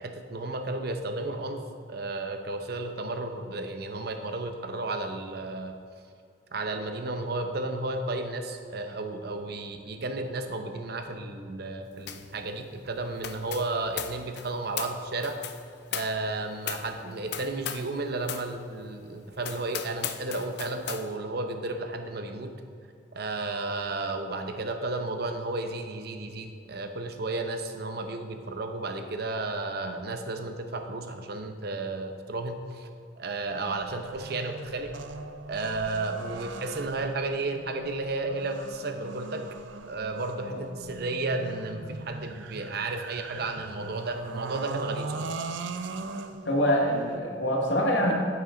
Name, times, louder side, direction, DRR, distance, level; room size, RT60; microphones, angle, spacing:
voice 1, 0.0-1.6 1.9-5.7 6.5-15.4 15.9-22.5 23.1-32.9 33.2-34.9 35.5-39.4 39.9-45.3, right 2 dB, 55° right, 6 dB, 0.8 m, -33 dB
sound 1, 12.1-12.3 12.6-17.9 18.2-18.5 18.9-19.0 19.4-21.0, left 9 dB, 60° left, 0.6 m, -37 dB
sound 2, 33.6-47.2, right 4 dB, 80° right, 0.5 m, -40 dB
voice 2, 46.4-48.1, equal, 80° left, 0 dB, 1.7 m, -25 dB
9.1 x 8.7 x 3.8 m, 2.3 s
head